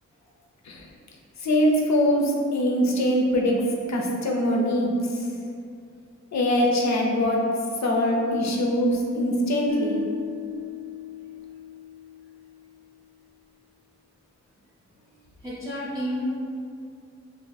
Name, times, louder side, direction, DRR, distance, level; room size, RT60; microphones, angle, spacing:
voice 1, 1.4-3.6 3.9-5.2 6.3-7.5 7.8-10.0, equal, 65° left, 0 dB, 0.6 m, -23 dB
sound 1, 9.7-12.9, left 4 dB, 65° right, 0.5 m, -36 dB
voice 2, 15.4-16.3, equal, 10° right, -9 dB, 0.7 m, -31 dB
2.5 x 2.5 x 4.0 m, 2.3 s
wide cardioid pair, 95°, 30 cm